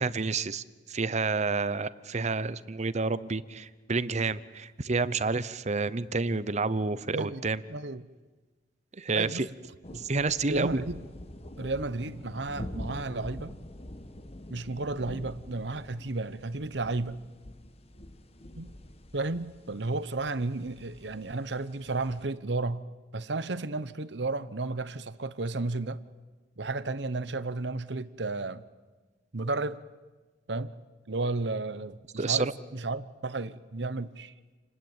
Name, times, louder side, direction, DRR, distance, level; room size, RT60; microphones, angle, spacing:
voice 1, 0.0-7.6 9.0-9.5 9.9-10.8 32.2-32.5, right 4 dB, 40° right, 0.8 m, -29 dB
voice 2, 7.1-7.4 7.7-8.1 9.1-9.5 9.9-10.1 10.5-11.0 11.6-13.5 14.5-17.2 18.6-18.7 19.1-22.9 23.1-26.0 26.6-28.6 29.3-29.8 30.5-30.7 31.1-34.3, right 3 dB, 70° right, 1.0 m, -33 dB
sound 1, 9.8-22.3, left 1 dB, 35° left, 1.4 m, -45 dB
29.0 x 20.5 x 9.0 m
head